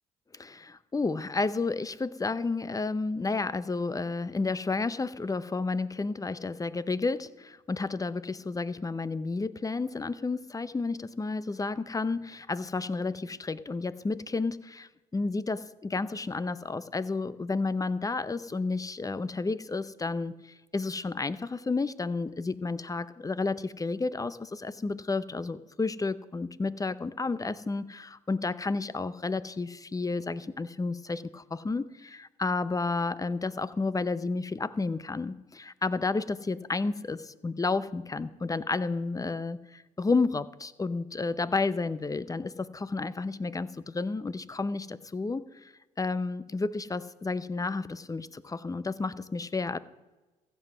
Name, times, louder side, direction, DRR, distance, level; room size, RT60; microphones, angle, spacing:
voice 1, 0.3-45.7 46.0-49.8, left 3 dB, 20° left, 17 dB, 0.7 m, -31 dB
15.0 x 7.8 x 6.1 m, 1.1 s
supercardioid pair, 60°, 16 cm